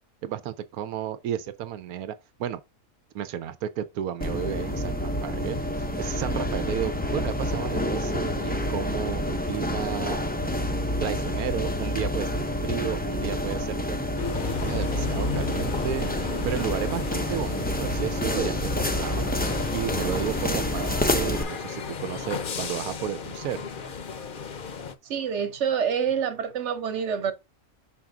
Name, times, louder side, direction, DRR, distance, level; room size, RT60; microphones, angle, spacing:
voice 1, 0.2-2.6 3.1-10.2 11.0-14.0 14.4-16.1 16.4-19.3 19.7-23.7, right 10 dB, 90° right, 1.2 m, -33 dB
sound 1, 4.2-21.4, left 1 dB, 15° left, 0.4 m, -28 dB
sound 2, 14.2-24.9, left 6 dB, 45° left, 0.8 m, -35 dB
voice 2, 25.0-27.3, right 7 dB, 55° right, 1.3 m, -27 dB
5.9 x 4.8 x 3.7 m
omnidirectional pair, 1.5 m